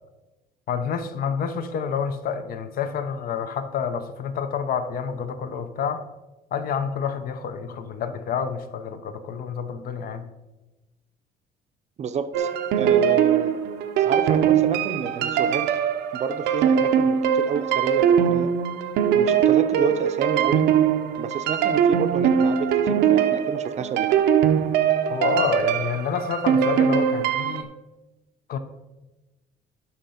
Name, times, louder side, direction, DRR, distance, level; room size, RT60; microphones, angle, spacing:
voice 1, 0.7-6.0 6.5-10.3 25.1-27.7 28.5-28.6, left 6 dB, 60° left, 10 dB, 0.8 m, -28 dB
voice 2, 12.0-12.5 12.8-13.6 14.0-15.7 16.1-18.5 19.2-20.6 21.2-24.1, right 6 dB, 40° right, 11 dB, 0.6 m, -29 dB
sound 1, 12.3-27.6, right 8 dB, 85° right, 0.7 m, -21 dB
9.6 x 5.8 x 4.2 m, 1.1 s
cardioid pair, 110°, 17 cm